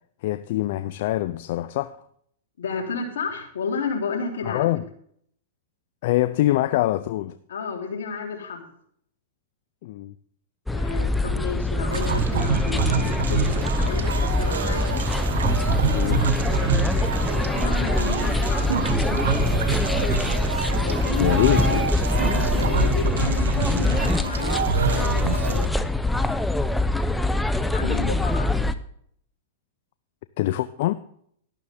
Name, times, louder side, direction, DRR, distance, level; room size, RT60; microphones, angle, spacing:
voice 1, 0.2-2.0 4.4-4.8 6.0-7.3 9.8-10.1 14.9-15.0 15.9-16.3 21.2-21.7 30.4-30.9, left 15 dB, 60° left, 0.5 m, -24 dB
voice 2, 2.6-4.7 7.5-8.7 10.7-15.0 17.4-18.9 20.8-21.8 22.3-25.8 27.7-28.7, left 5 dB, 80° left, 3.5 m, -32 dB
sound 1, 10.7-28.7, left 2 dB, 5° left, 0.7 m, -24 dB
sound 2, 11.9-25.6, right 6 dB, 85° right, 1.3 m, -27 dB
12.5 x 12.0 x 3.6 m
hypercardioid pair, 125°, 0 cm